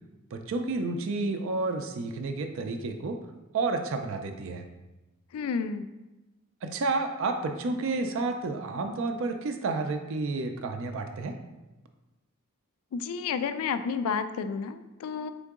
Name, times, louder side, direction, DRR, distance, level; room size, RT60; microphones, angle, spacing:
voice 1, 0.3-3.2 3.5-4.6 6.6-11.4, right 3 dB, 60° right, 5 dB, 0.4 m, -30 dB
voice 2, 5.3-5.9 12.9-15.3, left 6 dB, 75° left, 11 dB, 0.3 m, -31 dB
3.8 x 3.6 x 3.6 m, 1.1 s
head